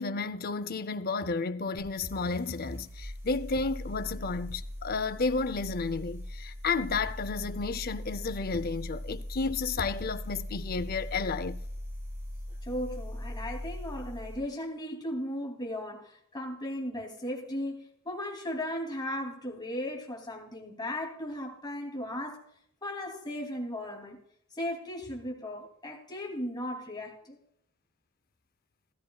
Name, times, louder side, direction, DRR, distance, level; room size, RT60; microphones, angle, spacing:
voice 1, 0.0-11.6, left 4 dB, 45° left, 0.6 m, -32 dB
sound 1, 1.8-14.5, left 1 dB, 10° right, 5.8 m, -40 dB
voice 2, 12.6-22.4 22.8-24.2 24.5-27.4, left 1 dB, 20° left, 2.7 m, -36 dB
16.5 x 13.5 x 2.3 m
head